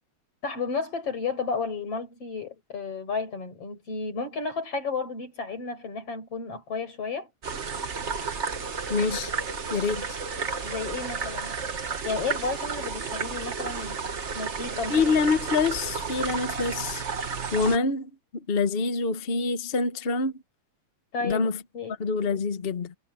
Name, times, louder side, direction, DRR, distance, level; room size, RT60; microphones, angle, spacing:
voice 1, 0.4-7.3 10.6-11.5 12.0-14.0 14.3-15.1 21.1-22.0, left 4 dB, 50° left, 6.5 m, -32 dB
sound 1, 7.4-17.8, right 5 dB, 55° right, 0.7 m, -32 dB
voice 2, 8.9-9.3 9.7-10.2 14.9-17.0 17.5-20.4 21.2-21.6 22.0-22.9, left 4 dB, 80° left, 0.5 m, -26 dB
omnidirectional pair, 3.3 m